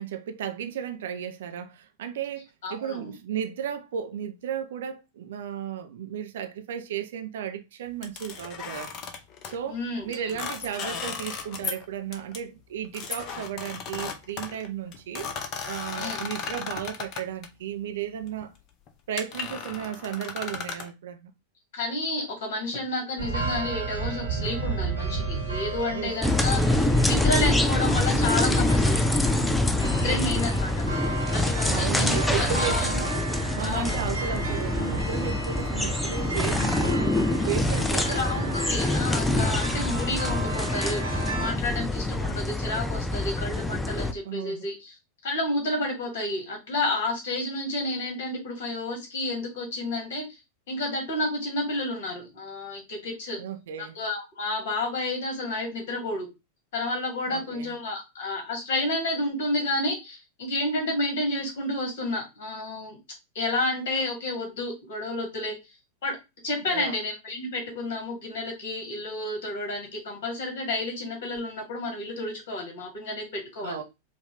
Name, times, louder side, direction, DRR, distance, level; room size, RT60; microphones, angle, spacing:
voice 1, 0.0-8.9 9.5-15.4 15.6-18.5 19.1-21.3 25.9-26.1 31.7-33.2 33.5-38.4 44.2-44.6 53.4-54.0 57.3-57.7 66.7-67.0 73.6-73.8, right 9 dB, 60° right, 0.6 m, -34 dB
voice 2, 2.6-3.1 9.7-10.4 16.0-16.2 21.7-29.2 29.7-30.9 31.3-32.9 33.6-34.0 37.9-44.9 45.2-50.2 50.7-53.4 53.8-56.3 56.7-63.0 63.3-65.6 66.0-66.2 66.4-73.8, left 2 dB, 55° left, 2.3 m, -30 dB
sound 1, 8.0-9.6 10.1-11.8 12.1-12.4 12.9-17.5 18.2-18.5 18.9-19.0 19.2-20.9, left 6 dB, 35° left, 0.7 m, -35 dB
sound 2, 23.2-41.5, right 4 dB, 80° right, 1.3 m, -33 dB
sound 3, 26.2-44.1, left 2 dB, 5° left, 0.5 m, -25 dB
5.0 x 2.6 x 3.2 m
figure-of-eight pair, 90°, 0 cm